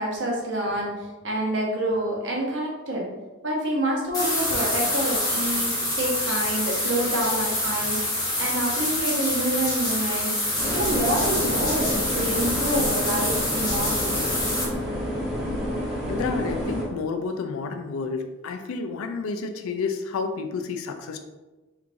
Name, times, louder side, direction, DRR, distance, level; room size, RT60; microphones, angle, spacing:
voice 1, 0.0-3.1 3.4-14.4, right 1 dB, 60° right, -2 dB, 0.8 m, -27 dB
sound 1, 4.1-14.6, left 1 dB, 20° left, 1.0 m, -26 dB
sound 2, 10.6-16.8, left 1 dB, ahead, 1.1 m, -29 dB
voice 2, 16.1-21.2, left 4 dB, 80° left, 7 dB, 0.4 m, -30 dB
3.4 x 3.1 x 2.5 m, 1.2 s
head